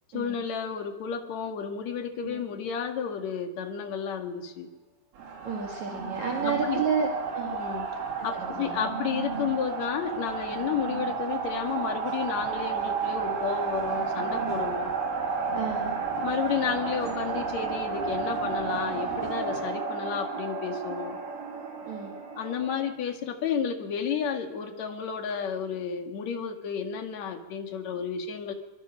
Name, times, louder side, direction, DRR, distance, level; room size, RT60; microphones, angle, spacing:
voice 1, 0.1-4.7 6.4-6.8 7.5-7.9 8.2-14.9 16.2-21.2 22.3-28.5, left 7 dB, 55° left, 4 dB, 2.2 m, -32 dB
sound 1, 5.2-22.9, right 5 dB, 90° right, 6.4 m, -32 dB
voice 2, 5.4-7.6 8.2-8.8 15.5-15.8 21.9-22.1, right 5 dB, 45° right, 0 dB, 3.0 m, -31 dB
24.5 x 24.0 x 6.3 m, 1.1 s
omnidirectional pair, 5.6 m